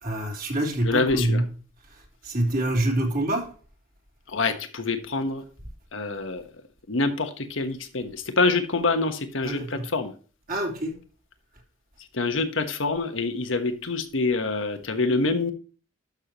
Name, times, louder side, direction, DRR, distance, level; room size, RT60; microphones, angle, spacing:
voice 1, 0.0-1.5 2.2-3.5 9.4-9.9 10.5-10.9, right 1 dB, 45° right, 3.1 m, -26 dB
voice 2, 0.8-1.4 4.3-5.4 5.9-6.4 6.9-10.1 12.1-15.5, left 3 dB, 75° left, 1.3 m, -26 dB
12.0 x 6.6 x 3.0 m
head